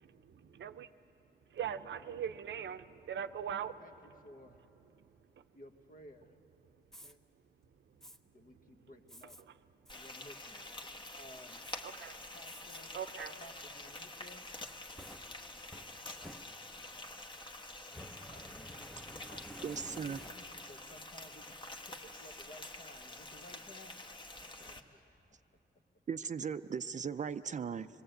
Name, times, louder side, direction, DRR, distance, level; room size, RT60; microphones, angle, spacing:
voice 1, 0.0-0.9 1.5-3.8 5.0-5.5 6.7-6.8 7.9-8.1 9.4-9.6 11.8-12.2 12.9-13.4, right 8 dB, 85° right, 10 dB, 0.7 m, -42 dB
voice 2, 4.2-4.6 5.5-6.4 7.0-7.2 8.3-9.3 9.9-11.6 12.3-13.0 13.4-14.5 18.3-18.7 19.3-21.6 21.8-24.1 24.6-25.2, left 1 dB, 50° left, 5 dB, 1.5 m, -56 dB
Fire, 6.9-7.1 8.0-8.2 9.1-9.4 9.9-10.0 10.5-10.9 11.6-11.8 12.4-12.8 13.3-13.4 14.5-16.9 17.8-20.7, equal, ahead, 0.7 m, -52 dB
Frying (food), 9.9-24.8, left 2 dB, 25° left, 1.2 m, -48 dB
voice 3, 19.6-20.2 26.1-27.9, right 6 dB, 40° right, 12 dB, 0.5 m, -37 dB
26.0 x 21.0 x 7.9 m, 2.9 s
wide cardioid pair, 135°, 18 cm